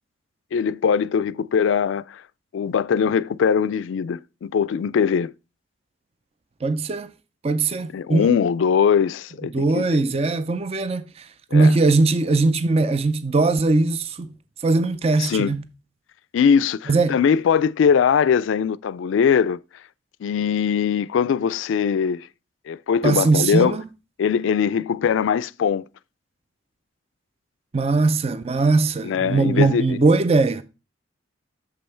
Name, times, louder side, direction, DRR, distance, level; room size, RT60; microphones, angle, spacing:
voice 1, 0.5-2.2 2.5-5.3 7.9-9.8 11.5-11.7 15.2-15.5 16.3-19.6 20.2-22.3 22.7-23.8 24.2-25.9 29.0-30.0, left 7 dB, 85° left, 0.3 m, -21 dB
voice 2, 6.6-7.1 7.4-8.4 9.5-14.3 14.6-15.6 16.9-17.2 23.0-23.8 27.7-30.6, right 3 dB, 30° right, 0.4 m, -20 dB
6.8 x 5.4 x 4.3 m
head